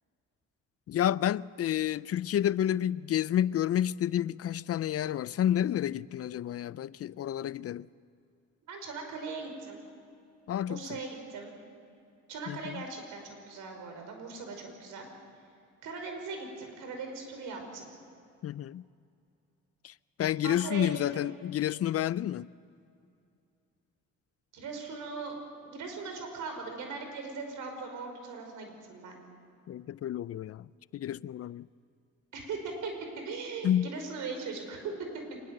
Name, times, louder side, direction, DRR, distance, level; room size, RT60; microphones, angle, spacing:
voice 1, 0.9-7.9 10.5-11.0 12.5-12.8 18.4-18.8 19.8-19.9 20.2-22.5 29.7-30.7 30.9-31.7 33.6-33.9, left 11 dB, 50° left, 0.5 m, -30 dB
voice 2, 8.7-9.8 10.6-11.6 12.3-15.1 15.8-17.9 20.4-21.3 24.5-25.3 25.6-29.2 32.3-34.9, right 4 dB, 80° right, 5.3 m, -39 dB
25.0 x 21.0 x 7.9 m
cardioid pair, 90°, 30 cm